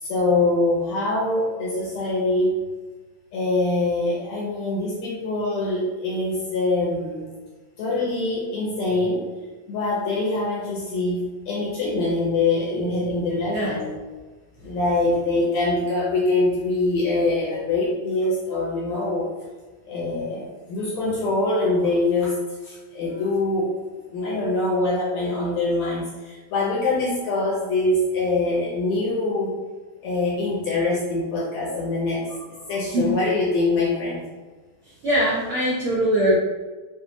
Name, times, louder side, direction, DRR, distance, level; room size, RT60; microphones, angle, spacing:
voice 1, 0.0-2.6 3.3-7.3 7.8-9.2 9.7-13.9 14.6-19.3 19.8-22.4 22.6-23.7 24.1-29.5 30.0-32.3 32.7-34.2, left 2 dB, 75° left, -5 dB, 1.6 m, -24 dB
voice 2, 13.5-13.8 32.4-32.5 32.9-33.2 33.9-34.0 34.8-36.3, right 1 dB, 90° right, -8 dB, 1.2 m, -22 dB
6.1 x 2.5 x 2.7 m, 1.3 s
omnidirectional pair, 4.0 m